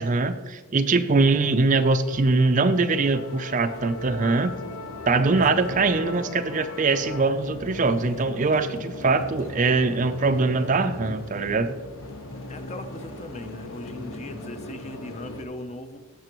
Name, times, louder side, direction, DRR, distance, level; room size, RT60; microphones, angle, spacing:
voice 1, 0.0-4.6 5.1-11.7, right 3 dB, 35° right, 10 dB, 0.4 m, -22 dB
Musical instrument, 1.2-7.2, left 2 dB, 85° left, 1.2 m, -40 dB
sound 1, 2.7-15.4, left 1 dB, 60° left, 1.1 m, -40 dB
voice 2, 12.5-16.0, left 1 dB, 30° left, 8 dB, 0.6 m, -38 dB
17.0 x 6.8 x 3.0 m, 1.3 s
head